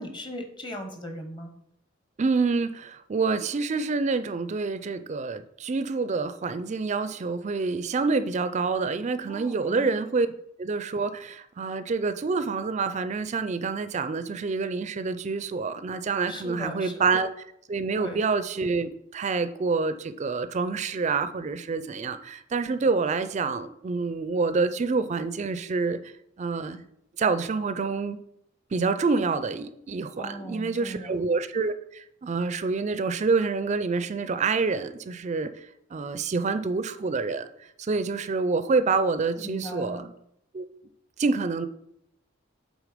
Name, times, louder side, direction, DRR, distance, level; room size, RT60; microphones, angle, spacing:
voice 1, 0.0-1.5 9.2-9.9 16.3-17.1 17.9-18.2 30.2-31.1 39.4-40.1, equal, 25° left, 5 dB, 1.0 m, -38 dB
voice 2, 2.2-10.3 10.6-17.3 17.7-26.0 26.4-26.8 27.2-28.2 28.7-35.6 35.9-37.5 37.8-40.1 40.5-40.6 41.2-41.7, right 4 dB, 35° right, 12 dB, 0.4 m, -27 dB
8.2 x 3.8 x 5.0 m, 0.77 s
head